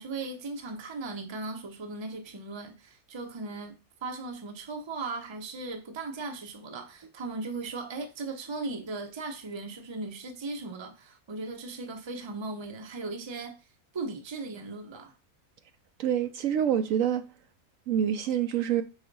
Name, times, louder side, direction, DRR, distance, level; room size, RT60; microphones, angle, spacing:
voice 1, 0.0-3.8 4.0-13.6 13.9-15.1, right 3 dB, 25° right, 0.7 m, -37 dB
voice 2, 16.0-17.2 17.9-18.8, right 9 dB, 70° right, 0.9 m, -26 dB
4.8 x 4.1 x 5.3 m
omnidirectional pair, 1.5 m